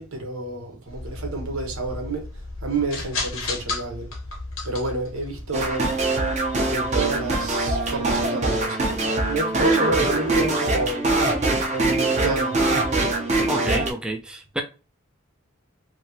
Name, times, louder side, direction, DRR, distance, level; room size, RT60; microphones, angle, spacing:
voice 1, 0.0-2.3 2.6-4.1 4.6-5.9 6.7-11.1 11.7-12.7, right 2 dB, 85° right, 1.0 m, -29 dB
sound 1, 0.9-8.2, left 3 dB, 70° left, 0.9 m, -35 dB
sound 2, 5.5-13.9, right 2 dB, 35° right, 0.7 m, -23 dB
voice 2, 13.5-14.6, right 1 dB, 5° right, 0.3 m, -29 dB
2.9 x 2.8 x 2.7 m
head